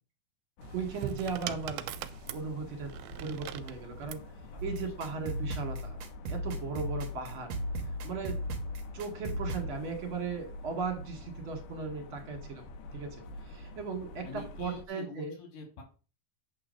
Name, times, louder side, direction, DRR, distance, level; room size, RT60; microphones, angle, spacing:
sound 1, 0.6-14.9, left 1 dB, 70° left, 2.1 m, -47 dB
sound 2, 0.6-4.3 5.3-5.7, right 12 dB, 85° right, 2.4 m, -41 dB
voice 1, 0.7-1.9 2.3-2.9 3.2-4.2 4.6-6.0 6.3-7.5 8.0-8.4 8.9-12.7 12.9-13.2 13.5-15.3, right 5 dB, 40° right, 2 dB, 2.5 m, -37 dB
voice 2, 4.4-5.2 14.2-15.8, left 3 dB, 85° left, 2 dB, 4.4 m, -47 dB
sound 3, 4.6-9.7, equal, 60° right, 2.0 m, -36 dB
8.6 x 3.8 x 6.5 m, 0.35 s
omnidirectional pair, 4.3 m